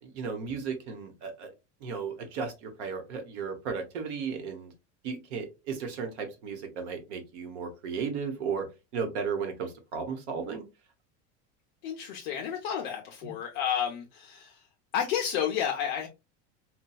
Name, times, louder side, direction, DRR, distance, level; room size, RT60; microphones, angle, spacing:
voice 1, 0.0-1.5 1.8-4.7 5.0-8.6 8.9-10.7 13.2-13.3, right 6 dB, 75° right, 1.0 m, -35 dB
voice 2, 11.8-14.7 14.9-16.1, left 9 dB, 45° left, 0.5 m, -31 dB
4.2 x 2.2 x 2.3 m
cardioid pair, 180°, 35 cm